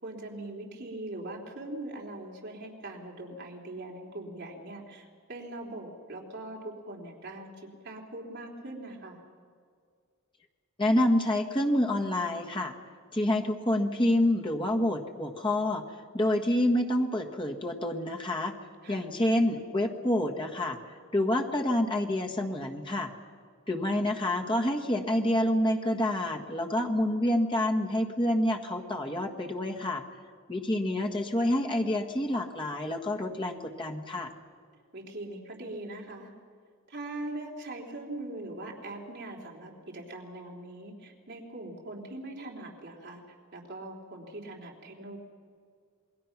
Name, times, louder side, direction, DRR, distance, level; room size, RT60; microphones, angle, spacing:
voice 1, 0.0-9.2 18.8-19.1 34.9-36.3 36.9-43.2 43.5-45.2, right 2 dB, 50° right, -1 dB, 3.4 m, -41 dB
voice 2, 10.8-12.7 13.1-15.8 16.1-18.5 18.9-20.8 21.1-23.1 23.7-30.0 30.5-34.3, left 1 dB, 25° left, 2 dB, 1.6 m, -27 dB
27.5 x 21.0 x 6.0 m, 2.1 s
head